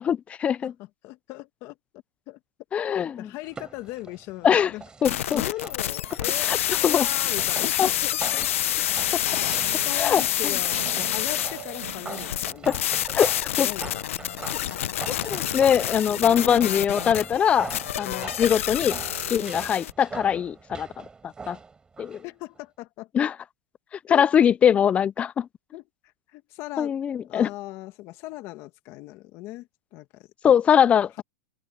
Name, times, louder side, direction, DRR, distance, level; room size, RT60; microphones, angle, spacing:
voice 1, 0.0-0.7 2.7-3.3 4.4-4.7 5.0-5.4 6.4-6.6 6.8-7.1 7.8-7.9 9.9-10.2 12.7-12.8 13.1-13.7 15.3-19.0 19.3-21.0 21.5-21.6 22.0-22.2 23.1-23.3 24.1-25.5 26.8-27.5 30.4-31.2, left 8 dB, 15° left, 0.4 m, -22 dB
voice 2, 0.6-1.7 2.3-2.4 2.9-4.8 5.3-6.5 6.8-8.5 9.7-12.7 13.6-14.0 14.5-14.7 22.2-23.1 24.1-24.3 25.7-25.8 26.3-27.0 27.3-30.6, left 18 dB, 40° left, 1.4 m, -38 dB
sound 1, 3.4-22.3 22.6-22.7, right 4 dB, 10° right, 7.8 m, -42 dB
sound 2, 5.0-19.9, left 12 dB, 80° left, 0.7 m, -28 dB
sound 3, 8.9-12.6 13.2-13.5 15.3-16.8 18.5-19.9, right 15 dB, 70° right, 2.0 m, -43 dB
open air
supercardioid pair, 145°, 7 cm